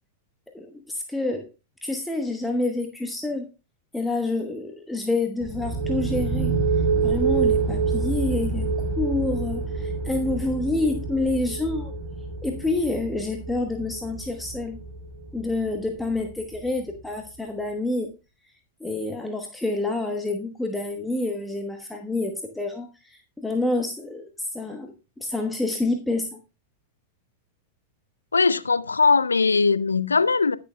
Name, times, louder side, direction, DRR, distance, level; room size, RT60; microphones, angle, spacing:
voice 1, 0.5-1.5 1.8-3.5 3.9-6.5 7.0-8.7 9.0-11.9 12.4-14.8 15.3-18.1 18.8-26.4, left 2 dB, 5° left, 1.1 m, -28 dB
sound 1, 5.4-16.9, right 4 dB, 15° right, 3.7 m, -27 dB
voice 2, 28.3-30.6, left 4 dB, 75° left, 0.5 m, -20 dB
20.0 x 6.7 x 2.2 m
figure-of-eight pair, 90°, 0 cm